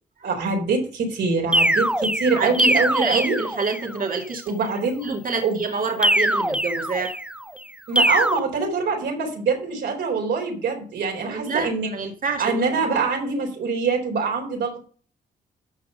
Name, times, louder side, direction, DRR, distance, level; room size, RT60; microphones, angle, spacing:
voice 1, 0.2-3.4 4.5-5.1 5.4-5.6 7.9-11.9 12.4-14.8, right 4 dB, 80° right, 1 dB, 3.9 m, -24 dB
sound 1, 1.5-3.9 6.0-7.4 8.0-8.4, right 1 dB, 5° right, 1.2 m, -22 dB
voice 2, 2.3-4.4 5.0-7.2 11.2-12.9, right 4 dB, 50° right, 2 dB, 2.2 m, -27 dB
13.0 x 6.0 x 5.3 m, 0.44 s
supercardioid pair, 50°, 18 cm